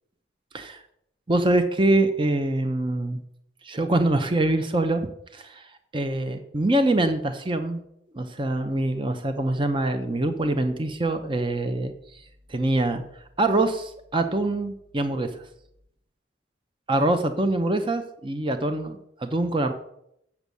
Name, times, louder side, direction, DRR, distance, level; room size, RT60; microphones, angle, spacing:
voice 1, 1.3-3.2 3.6-5.0 5.3-7.8 8.1-12.2 12.5-13.0 13.4-15.4 16.9-19.7, right 2 dB, 25° right, 8 dB, 0.7 m, -24 dB
7.9 x 7.2 x 6.9 m, 0.75 s
head